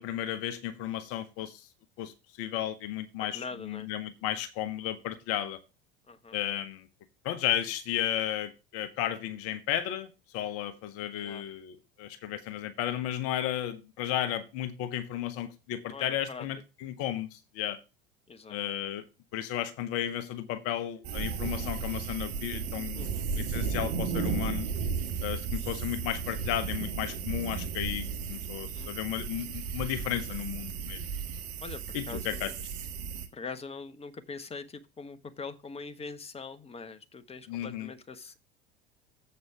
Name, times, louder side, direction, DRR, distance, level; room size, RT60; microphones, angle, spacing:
voice 1, 0.0-1.7 2.0-5.6 6.3-6.9 7.2-10.1 10.3-17.8 18.5-19.0 19.3-24.7 25.2-31.0 31.9-32.5 37.5-37.9, left 11 dB, 50° left, 1.1 m, -34 dB
voice 2, 3.2-3.9 6.1-6.4 11.2-11.4 15.9-16.5 18.3-18.6 22.9-23.3 28.7-28.9 31.6-32.6 33.3-38.4, left 4 dB, 20° left, 1.2 m, -43 dB
sound 1, 21.0-33.3, right 6 dB, 60° right, 1.5 m, -34 dB
7.8 x 5.5 x 5.7 m
figure-of-eight pair, 70°, 30 cm